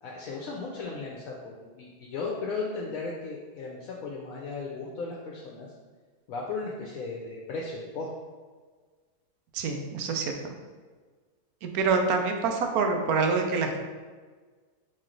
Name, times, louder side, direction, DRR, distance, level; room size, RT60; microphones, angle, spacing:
voice 1, 0.0-5.7 6.3-8.1, left 4 dB, 70° left, -2 dB, 0.9 m, -36 dB
voice 2, 9.5-10.5 11.6-13.8, right 4 dB, 75° right, 4 dB, 1.0 m, -26 dB
4.2 x 3.1 x 3.8 m, 1.4 s
omnidirectional pair, 1.7 m